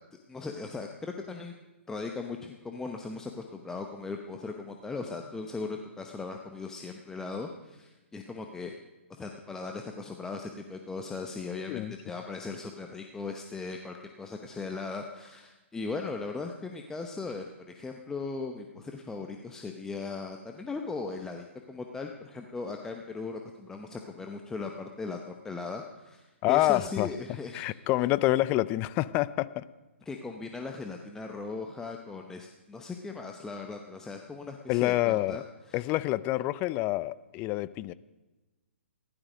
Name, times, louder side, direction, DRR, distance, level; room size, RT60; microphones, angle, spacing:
voice 1, 0.3-1.6 1.9-8.7 9.1-27.7 30.1-35.9, left 4 dB, 5° left, 0.8 m, -38 dB
voice 2, 26.4-27.1 27.5-29.6 34.7-35.4 35.7-37.9, left 17 dB, 25° left, 0.5 m, -27 dB
15.5 x 12.0 x 5.2 m
figure-of-eight pair, 130°, 7 cm